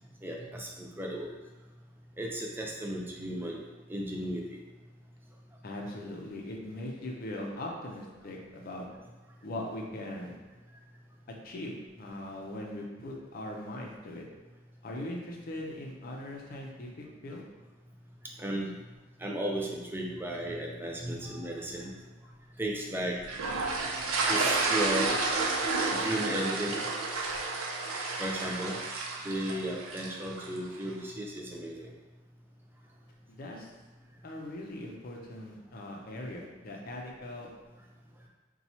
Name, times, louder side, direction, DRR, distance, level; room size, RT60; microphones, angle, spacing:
voice 1, 0.2-1.3 2.2-3.6 3.9-4.4 18.4-18.7 19.2-21.9 22.6-23.2 24.2-25.2 25.9-26.9 28.2-28.8 29.2-31.9, right 1 dB, 10° right, -1 dB, 0.3 m, -35 dB
voice 2, 5.6-8.9 9.4-10.4 11.3-14.2 14.8-17.4 33.3-33.7 34.2-37.5, left 1 dB, 45° left, 0 dB, 0.5 m, -40 dB
sound 1, 23.3-30.6, right 3 dB, 90° right, 0.5 m, -31 dB
2.8 x 2.3 x 4.1 m, 1.2 s
head